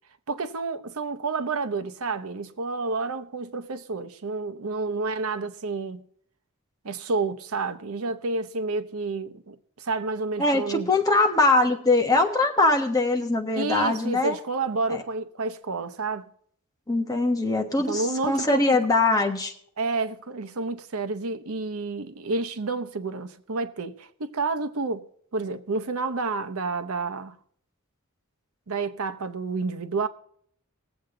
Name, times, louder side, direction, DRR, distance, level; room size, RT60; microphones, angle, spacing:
voice 1, 0.3-6.0 6.8-10.9 13.5-16.3 17.8-18.8 19.8-25.1 25.3-27.4 28.7-30.1, right 3 dB, 80° right, 0.8 m, -30 dB
voice 2, 10.4-14.3 14.9-15.0 16.9-19.5, left 2 dB, 15° left, 1.3 m, -22 dB
20.5 x 7.9 x 3.8 m
head